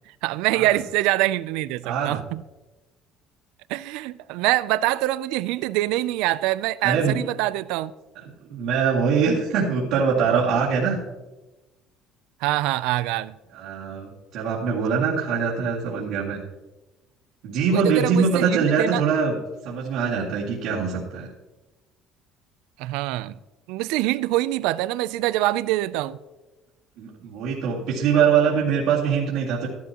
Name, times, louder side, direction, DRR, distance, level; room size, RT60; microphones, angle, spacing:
voice 1, 0.2-2.4 3.7-7.9 12.4-13.3 17.7-19.0 22.8-23.4 23.7-26.2, right 16 dB, 80° right, 0.4 m, -24 dB
voice 2, 1.8-2.2 6.8-7.2 8.1-11.0 13.5-16.4 17.4-19.4 19.6-21.3 27.0-29.7, right 6 dB, 65° right, 2.2 m, -23 dB
14.5 x 12.0 x 2.9 m
cardioid pair, 180°, 0 cm